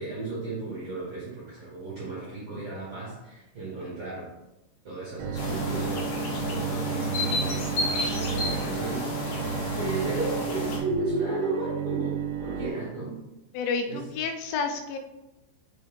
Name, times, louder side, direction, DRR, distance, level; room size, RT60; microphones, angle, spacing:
voice 1, 0.0-4.3 4.8-9.3 9.7-13.2 13.9-14.0, right 2 dB, 60° right, -8 dB, 1.4 m, -34 dB
Bowed string instrument, 5.2-12.7, right 8 dB, 85° right, 2.9 m, -33 dB
sound 1, 5.3-10.8, left 2 dB, 65° left, 2.2 m, -31 dB
voice 2, 13.5-15.0, left 5 dB, 85° left, 5 dB, 3.0 m, -30 dB
5.5 x 5.2 x 3.6 m, 0.97 s
omnidirectional pair, 5.4 m